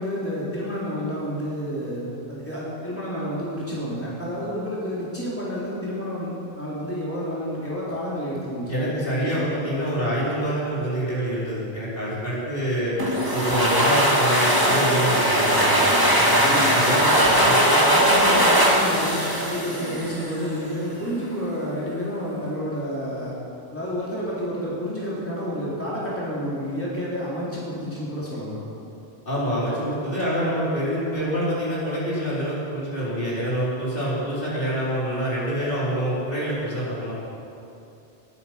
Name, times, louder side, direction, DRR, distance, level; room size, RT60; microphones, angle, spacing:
voice 1, 0.0-6.3 6.6-9.5 16.0-17.2 17.7-23.3 23.7-28.6, equal, 10° left, -8 dB, 3.9 m, -30 dB
voice 2, 8.7-12.9 13.3-15.8 16.5-17.0 17.2-17.6 29.3-37.1, equal, 60° left, -8 dB, 4.0 m, -26 dB
sound 1, 13.0-20.5, equal, 20° right, 2.0 m, -19 dB
20.0 x 9.4 x 6.0 m, 2.7 s
omnidirectional pair, 1.1 m